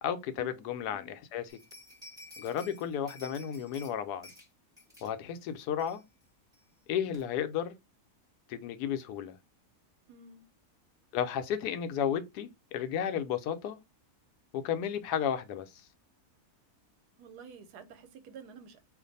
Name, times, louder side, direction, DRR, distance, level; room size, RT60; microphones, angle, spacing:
voice 1, 0.0-1.6 2.4-4.3 5.0-6.0 6.9-7.8 8.5-9.4 11.1-13.8 14.5-15.7, left 9 dB, 85° left, 1.1 m, -33 dB
sound 1, 1.5-3.9 4.2-4.5 4.8-5.1 5.5-5.6 5.8-6.2 6.5-6.6 7.1-7.2, left 1 dB, 5° right, 0.8 m, -52 dB
voice 2, 10.1-10.4 17.2-18.8, right 6 dB, 85° right, 1.2 m, -50 dB
2.5 x 2.5 x 3.9 m
omnidirectional pair, 1.7 m